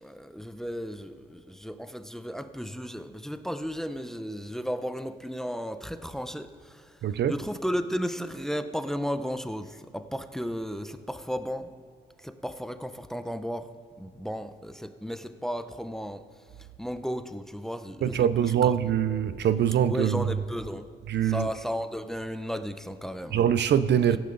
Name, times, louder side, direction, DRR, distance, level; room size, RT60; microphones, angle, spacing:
voice 1, 0.0-7.0 7.3-11.7 12.2-13.7 14.0-16.3 16.8-18.7 19.9-20.9 21.2-23.4 24.1-24.2, equal, ahead, 0.7 m, -34 dB
voice 2, 7.0-7.5 18.0-20.3 21.1-21.5 23.3-24.2, right 9 dB, 60° right, 0.6 m, -24 dB
17.0 x 13.0 x 4.0 m
cardioid pair, 90°, 20 cm